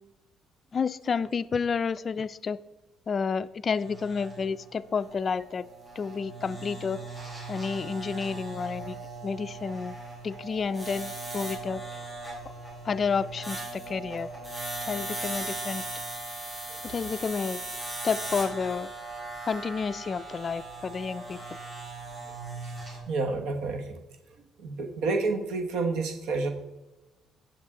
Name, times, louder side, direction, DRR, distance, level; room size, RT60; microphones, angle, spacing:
voice 1, 0.7-2.6 3.1-5.6 6.0-7.0 7.5-9.0 9.2-10.0 10.2-11.8 12.8-14.3 14.8-15.8 16.8-17.6 18.0-18.9 19.5-21.4, left 5 dB, 30° left, 13 dB, 0.3 m, -30 dB
sound 1, 3.7-23.0, right 2 dB, 20° right, 4.2 m, -39 dB
voice 2, 23.1-24.0 24.6-26.5, right 3 dB, 80° right, 5 dB, 1.1 m, -29 dB
16.5 x 7.3 x 3.7 m, 1.1 s
cardioid pair, 170°, 0 cm